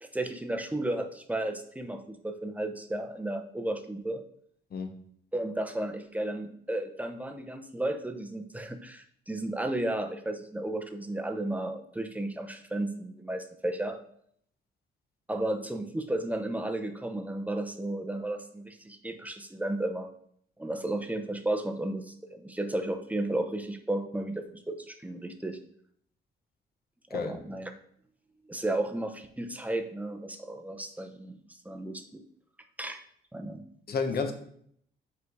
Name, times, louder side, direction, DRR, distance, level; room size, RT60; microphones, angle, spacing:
voice 1, 0.0-4.2 5.3-14.0 15.3-20.1 20.6-25.6 27.1-27.7 28.5-31.4 31.6-32.2 32.8-33.0 33.3-33.6, right 1 dB, 5° right, 5 dB, 0.7 m, -33 dB
voice 2, 33.9-34.3, left 5 dB, 50° left, 6 dB, 1.0 m, -30 dB
5.5 x 3.9 x 4.7 m, 0.66 s
cardioid pair, 90°, 20 cm